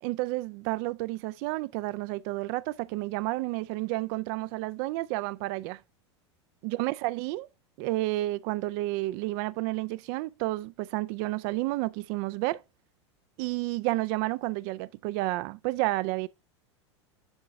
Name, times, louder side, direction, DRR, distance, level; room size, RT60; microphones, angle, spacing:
voice 1, 0.0-5.8 6.6-7.5 7.8-12.6 13.4-16.3, right 19 dB, 50° right, 0.4 m, -31 dB
9.5 x 3.9 x 3.4 m
hypercardioid pair, 100°, 15 cm